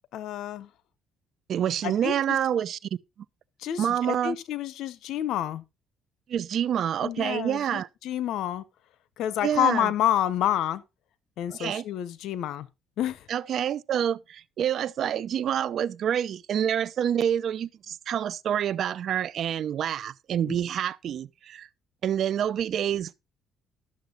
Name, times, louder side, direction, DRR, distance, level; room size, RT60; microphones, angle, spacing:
voice 1, 0.1-0.7 1.8-2.4 3.6-5.6 7.0-8.6 9.2-10.8 11.4-12.7 13.0-13.3 20.4-20.6, left 11 dB, 75° left, 0.9 m, -29 dB
voice 2, 1.5-2.8 3.8-4.4 6.3-7.9 9.4-9.9 11.6-11.8 13.3-21.7 22.0-23.1, right 9 dB, 60° right, 0.5 m, -27 dB
12.0 x 7.0 x 3.9 m
cardioid pair, 85°, 0 cm